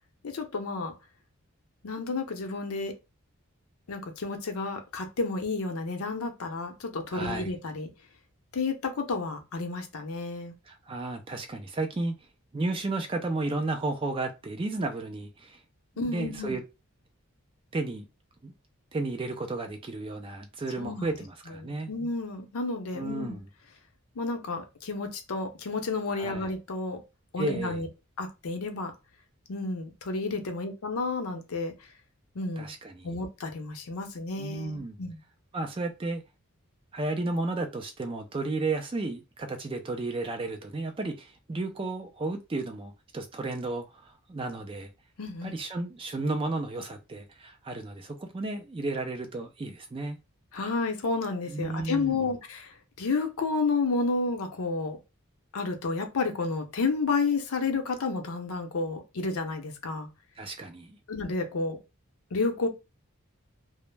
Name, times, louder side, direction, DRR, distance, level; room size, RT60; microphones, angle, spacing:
voice 1, 0.2-0.9 1.8-2.9 3.9-7.9 8.5-10.5 16.0-16.6 20.8-21.1 21.6-23.4 24.2-27.0 27.3-27.9 28.2-28.9 29.5-31.7 32.3-32.7 33.0-35.2 45.2-45.6 50.5-52.7 53.0-55.0 55.5-60.1 61.1-61.8 62.3-62.7, left 3 dB, 75° left, 0.6 m, -31 dB
voice 2, 7.1-7.6 10.7-12.2 12.5-15.6 16.0-16.6 17.7-18.1 18.4-18.5 18.9-21.9 22.9-23.4 26.1-26.5 27.4-27.8 32.6-33.1 34.4-35.0 35.5-36.2 36.9-44.9 45.4-50.2 51.5-52.3 60.4-61.0, right 2 dB, 25° right, 0.3 m, -33 dB
2.2 x 2.0 x 3.2 m
head